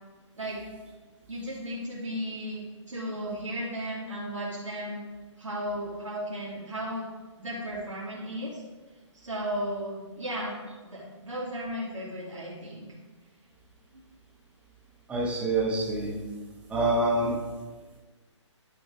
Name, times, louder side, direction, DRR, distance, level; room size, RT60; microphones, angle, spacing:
voice 1, 1.3-5.0 5.4-7.1 7.4-8.6 9.1-10.6 10.8-12.9 13.9-14.0, equal, 80° right, -7 dB, 2.3 m, -35 dB
voice 2, 15.1-16.1 16.7-17.3, right 2 dB, 5° right, -6 dB, 1.4 m, -26 dB
10.0 x 5.3 x 3.5 m, 1.3 s
figure-of-eight pair, 140°, 16 cm